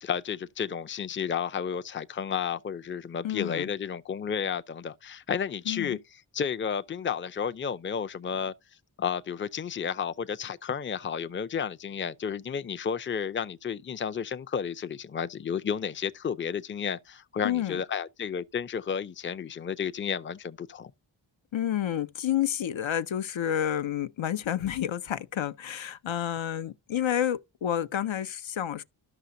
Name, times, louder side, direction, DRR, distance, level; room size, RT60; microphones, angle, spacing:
voice 1, 0.0-6.0 6.3-8.5 9.0-20.9, left 7 dB, 25° left, 0.4 m, -32 dB
voice 2, 3.2-3.7 5.7-6.0 17.4-17.8 21.5-28.8, left 10 dB, 80° left, 0.6 m, -29 dB
13.0 x 5.8 x 2.6 m
wide cardioid pair, 50°, 46 cm